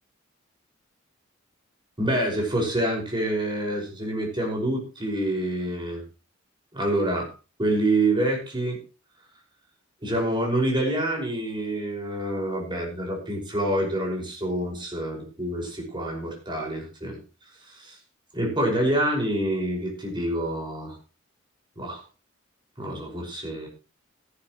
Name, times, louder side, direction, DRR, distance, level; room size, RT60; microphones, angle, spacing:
voice 1, 2.0-6.0 6.7-7.3 7.6-8.8 10.0-17.2 17.7-18.0 18.3-21.0 21.8-22.0 22.8-23.7, right 1 dB, 25° right, 0 dB, 5.6 m, -27 dB
16.0 x 11.5 x 3.1 m, 0.33 s
head